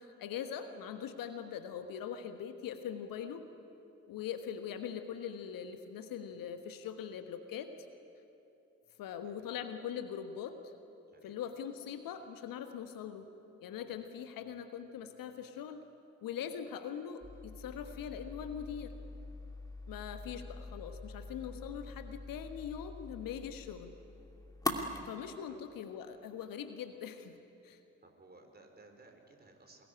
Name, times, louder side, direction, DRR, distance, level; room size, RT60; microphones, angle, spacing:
voice 1, 0.0-3.5 4.1-7.7 9.0-10.7 11.2-13.3 13.6-15.8 16.2-18.9 19.9-23.9 25.0-27.3 27.6-27.8, left 8 dB, 55° left, 8 dB, 1.4 m, -42 dB
voice 2, 11.1-11.5 20.2-20.6 25.5-25.6 28.0-29.8, right 2 dB, 25° right, 3 dB, 4.4 m, -59 dB
sound 1, 17.2-25.0, left 2 dB, 10° left, 2.5 m, -43 dB
23.0 x 21.0 x 10.0 m, 2.8 s
figure-of-eight pair, 45°, 41 cm